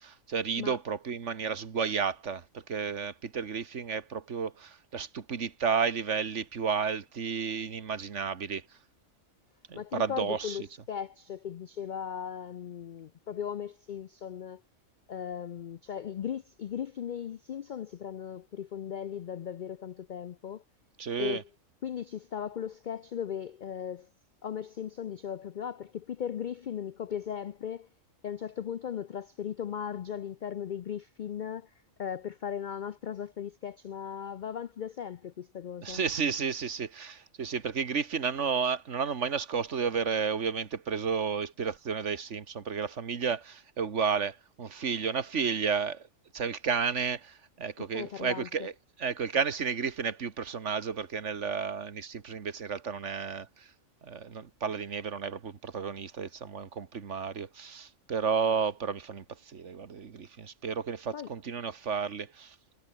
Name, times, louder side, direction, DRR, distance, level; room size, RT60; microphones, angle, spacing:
voice 1, 0.0-8.6 9.7-10.6 21.0-21.4 35.8-46.0 46.3-48.7 49.0-53.7 54.0-62.6, right 6 dB, 60° right, 1.7 m, -32 dB
voice 2, 9.7-14.6 15.1-20.6 21.2-21.4 21.8-24.1 24.4-27.9 28.2-31.7 32.0-36.0 47.9-48.7 61.1-61.3, left 8 dB, 65° left, 0.4 m, -37 dB
omnidirectional pair, 1.4 m